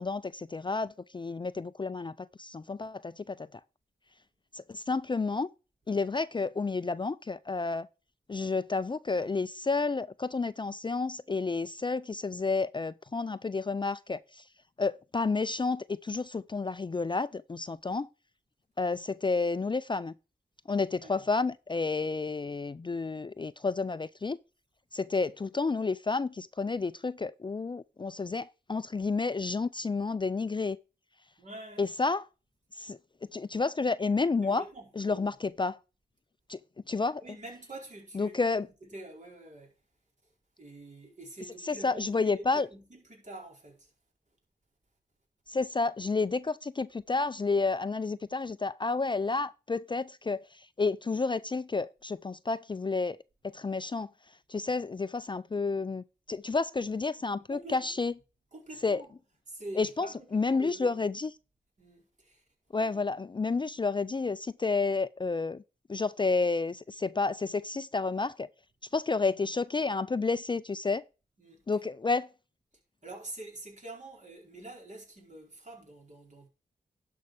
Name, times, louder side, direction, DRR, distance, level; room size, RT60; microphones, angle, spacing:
voice 1, 0.0-3.6 4.5-5.5 5.9-7.9 8.3-14.5 14.8-18.1 18.8-20.1 20.7-24.4 24.9-30.8 31.8-32.2 32.7-33.0 33.3-34.6 35.0-35.8 36.5-36.6 36.9-37.2 38.1-38.7 41.6-42.7 45.5-53.2 53.5-54.1 54.5-58.1 58.8-59.0 59.8-61.3 62.7-65.6 65.9-68.5 68.9-71.0 71.7-72.3, left 4 dB, 30° left, 0.4 m, -30 dB
voice 2, 31.4-31.9 34.4-35.2 37.2-38.5 38.8-39.8 40.2-43.9 57.4-58.0 58.5-59.1 59.5-60.9 61.8-62.4 62.7-63.0 71.4-71.8 73.0-76.5, right 1 dB, 45° right, 4.6 m, -46 dB
11.5 x 5.5 x 4.9 m
cardioid pair, 45°, 17 cm